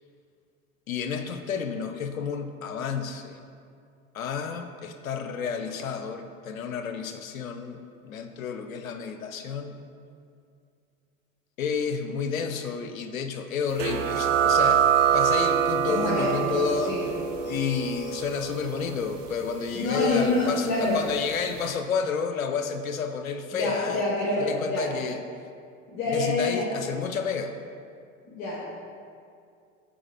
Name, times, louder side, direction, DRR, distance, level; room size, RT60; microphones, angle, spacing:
voice 1, 0.9-3.4 4.1-9.8 11.6-14.8 15.1-16.9 17.4-24.0 24.4-25.2 26.0-27.5, left 6 dB, 80° left, 7 dB, 0.6 m, -30 dB
sound 1, 13.8-21.0, right 8 dB, 65° right, 0.6 m, -26 dB
voice 2, 15.9-16.3 16.8-17.0 19.8-21.0 23.5-24.4 24.7-24.8 25.9-26.6 28.2-28.6, left 2 dB, 40° left, -6 dB, 1.6 m, -26 dB
6.4 x 4.3 x 4.4 m, 2.3 s
hypercardioid pair, 85°, 40 cm